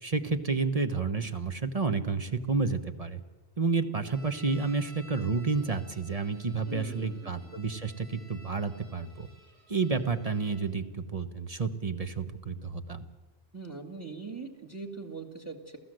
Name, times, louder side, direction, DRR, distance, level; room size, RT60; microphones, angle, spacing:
voice 1, 0.0-3.2 3.6-9.3 9.7-13.1, right 4 dB, 35° right, 7 dB, 1.2 m, -30 dB
sound 1, 4.0-10.6, equal, 85° right, 6.8 m, -56 dB
voice 2, 6.7-7.5 13.5-15.8, right 4 dB, 15° right, 5 dB, 2.1 m, -41 dB
28.5 x 16.0 x 7.8 m, 1.2 s
omnidirectional pair, 1.0 m